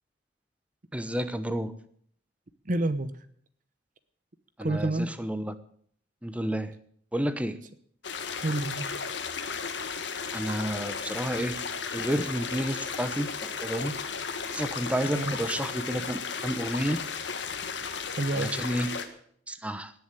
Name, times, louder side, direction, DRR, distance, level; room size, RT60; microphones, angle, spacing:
voice 1, 0.9-1.7 4.6-5.5 6.2-6.7 7.1-7.6 10.3-11.6 11.9-14.0 14.5-17.0 18.4-18.9 19.5-19.9, equal, 5° right, 12 dB, 0.9 m, -30 dB
voice 2, 2.7-3.1 4.6-5.1 8.4-8.9 15.2-15.4 18.1-18.5, right 2 dB, 45° right, 13 dB, 0.9 m, -28 dB
sound 1, 8.0-19.1, left 5 dB, 70° left, 1.6 m, -34 dB
18.5 x 7.2 x 9.1 m, 0.62 s
head